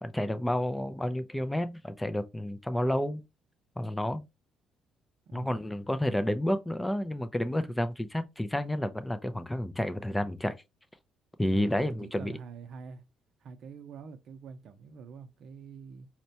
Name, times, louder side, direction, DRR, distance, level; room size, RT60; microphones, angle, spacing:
voice 1, 0.0-3.2 3.8-4.2 5.3-10.6 11.4-12.3, left 1 dB, 10° left, 0.4 m, -30 dB
voice 2, 5.3-5.6 11.5-13.0 13.4-16.1, right 6 dB, 60° right, 0.6 m, -46 dB
4.2 x 2.2 x 2.7 m
cardioid pair, 110°, 0 cm